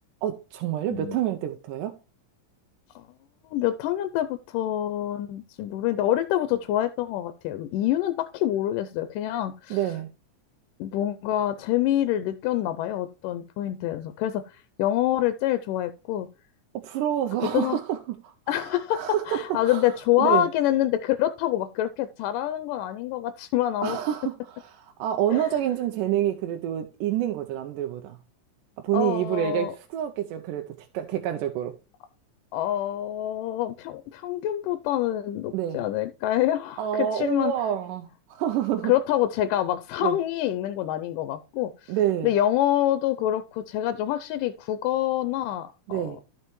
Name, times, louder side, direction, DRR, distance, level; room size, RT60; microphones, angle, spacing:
voice 1, 0.2-2.0 9.7-10.1 16.8-18.6 18.9-19.9 20.2-20.5 23.8-28.2 28.8-31.7 35.5-35.8 36.8-38.9 40.0-40.2 41.9-42.3 45.9-46.2, right 11 dB, 85° right, 2.3 m, -28 dB
voice 2, 3.4-9.8 10.8-16.3 17.4-17.8 18.5-24.0 25.3-25.6 28.9-29.7 32.5-37.5 38.8-41.9 42.2-46.2, left 12 dB, 85° left, 2.2 m, -26 dB
14.0 x 5.6 x 3.0 m
omnidirectional pair, 3.7 m